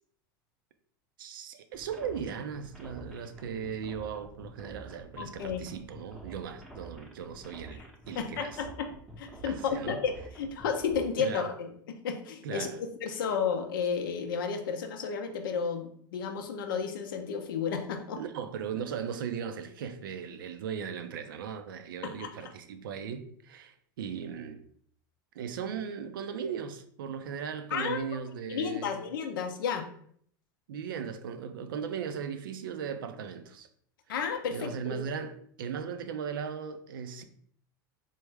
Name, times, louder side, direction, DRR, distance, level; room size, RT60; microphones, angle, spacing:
voice 1, 1.2-8.6 9.4-10.0 11.2-11.5 12.4-12.8 13.1-13.2 18.2-24.6 25.3-29.0 30.7-33.7 34.5-37.2, right 7 dB, 85° right, 0.4 m, -38 dB
sound 1, 1.7-11.0, right 2 dB, ahead, 0.7 m, -48 dB
voice 2, 5.2-5.7 7.8-7.9 8.1-8.9 9.2-18.2 22.0-22.5 27.7-28.0 28.5-29.8 34.1-35.0, left 6 dB, 80° left, 0.5 m, -32 dB
3.4 x 2.1 x 3.3 m
hypercardioid pair, 95°, 11 cm